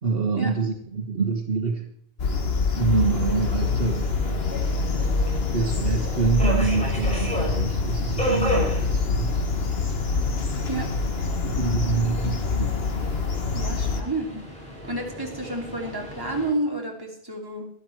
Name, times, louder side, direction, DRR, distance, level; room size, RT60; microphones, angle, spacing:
voice 1, 0.0-1.9 2.8-4.1 5.5-9.3 11.4-12.8, right 4 dB, 65° right, 4 dB, 1.6 m, -26 dB
sound 1, 2.2-14.0, left 4 dB, 75° left, 1.6 m, -25 dB
Subway metro underground, 2.7-16.5, equal, 5° left, 6.0 m, -34 dB
voice 2, 13.5-14.4 14.9-17.7, right 2 dB, 20° right, 0 dB, 3.2 m, -30 dB
12.0 x 12.0 x 4.6 m, 0.69 s
omnidirectional pair, 1.1 m